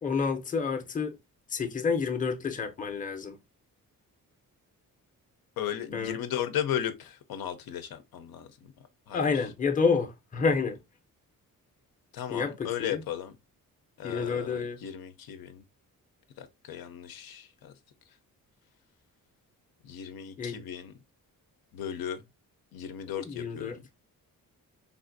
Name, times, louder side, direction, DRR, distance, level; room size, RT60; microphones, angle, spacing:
voice 1, 0.0-1.2 1.5-3.4 5.9-6.2 9.1-10.8 12.3-13.0 14.0-14.8 20.4-20.6 23.2-23.8, left 5 dB, 25° left, 0.5 m, -29 dB
voice 2, 5.6-9.5 12.1-13.4 14.0-15.6 16.4-17.7 19.8-20.9 21.7-22.2 22.7-23.8, left 10 dB, 90° left, 0.6 m, -36 dB
3.5 x 2.5 x 2.5 m
cardioid pair, 115°, 35 cm